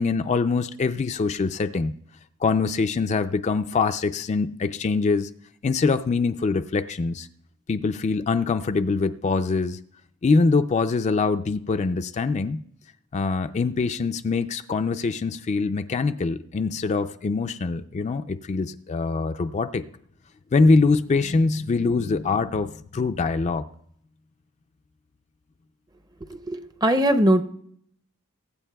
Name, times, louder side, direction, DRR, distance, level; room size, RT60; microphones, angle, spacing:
voice 1, 0.0-1.9 2.4-5.3 5.6-7.3 7.7-9.8 10.2-12.6 13.1-19.9 20.5-23.7, left 4 dB, 30° left, 8 dB, 0.3 m, -23 dB
voice 2, 26.5-27.4, right 1 dB, 20° right, 9 dB, 0.6 m, -20 dB
23.0 x 8.6 x 2.3 m, 0.65 s
head